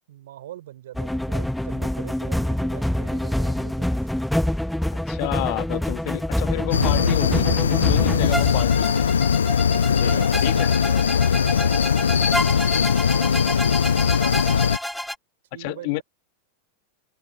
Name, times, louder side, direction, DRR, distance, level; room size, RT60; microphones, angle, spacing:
voice 1, 0.1-3.9 9.8-12.6 13.1-13.5 15.5-16.0, right 13 dB, 60° right, 5.5 m, -42 dB
sound 1, 0.9-15.1, left 1 dB, ahead, 1.3 m, -27 dB
voice 2, 5.1-9.0 9.9-10.7 15.6-16.0, left 38 dB, 45° left, 2.0 m, -30 dB
sound 2, 6.7-14.8, left 7 dB, 70° left, 1.0 m, -20 dB
figure-of-eight pair, 90°, 0 cm